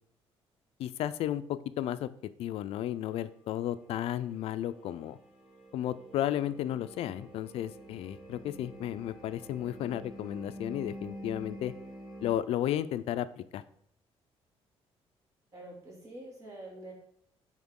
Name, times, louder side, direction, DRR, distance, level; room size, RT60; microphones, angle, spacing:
voice 1, 0.8-2.1 2.4-5.2 5.7-11.7 12.2-13.6, left 12 dB, 65° left, 13 dB, 0.4 m, -33 dB
sound 1, 3.8-12.3, equal, ahead, 1.6 m, -48 dB
voice 2, 15.5-16.9, right 1 dB, 30° right, -2 dB, 2.4 m, -46 dB
9.8 x 4.3 x 3.7 m, 0.68 s
cardioid pair, 175°, 11 cm